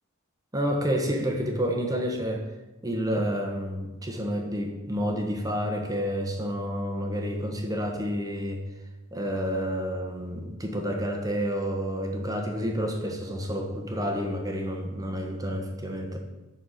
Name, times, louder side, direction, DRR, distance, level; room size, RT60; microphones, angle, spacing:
voice 1, 0.5-2.5 2.8-8.6 9.1-16.2, equal, 15° right, 2 dB, 1.3 m, -29 dB
9.7 x 4.5 x 6.6 m, 1.0 s
head